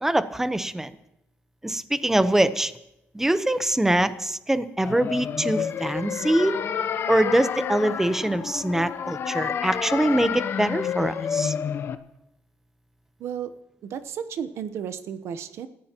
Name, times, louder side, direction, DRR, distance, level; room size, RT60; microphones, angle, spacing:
voice 1, 0.0-0.9 1.6-2.7 3.1-6.6 7.1-11.5, right 1 dB, 10° right, 12 dB, 0.9 m, -23 dB
sound 1, 4.8-12.0, left 7 dB, 55° left, 0.8 m, -29 dB
voice 2, 13.2-13.5 13.8-15.7, right 8 dB, 75° right, 12 dB, 1.0 m, -33 dB
28.5 x 14.5 x 3.0 m, 0.87 s
cardioid pair, 110°, 5 cm